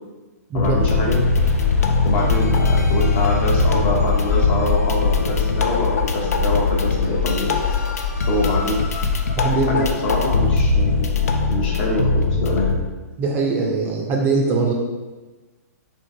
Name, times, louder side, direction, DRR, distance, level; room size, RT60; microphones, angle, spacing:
voice 1, 0.5-1.2 2.0-7.6 8.3-8.8 9.7-12.7, left 1 dB, 40° left, -2 dB, 0.7 m, -24 dB
sound 1, 0.6-12.8, left 3 dB, 70° left, 0.4 m, -23 dB
sound 2, 0.8-11.3, left 5 dB, 20° left, 1.1 m, -23 dB
voice 2, 9.4-9.9 13.2-14.7, right 3 dB, 20° right, -1 dB, 0.4 m, -21 dB
3.6 x 2.6 x 2.5 m, 1.2 s
figure-of-eight pair, 120°, 9 cm